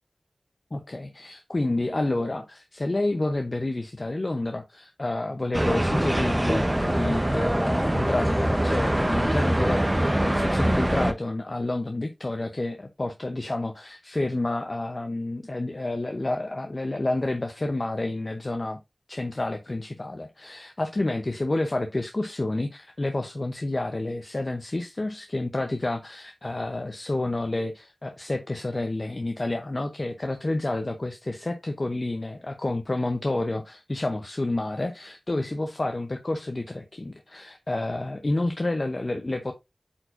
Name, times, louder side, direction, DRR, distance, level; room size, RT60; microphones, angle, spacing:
voice 1, 0.7-18.8 19.1-39.5, left 2 dB, 50° left, 0.8 m, -29 dB
sound 1, 5.5-11.1, right 1 dB, 20° right, 0.9 m, -24 dB
8.6 x 4.5 x 2.6 m
wide cardioid pair, 40°, 0 cm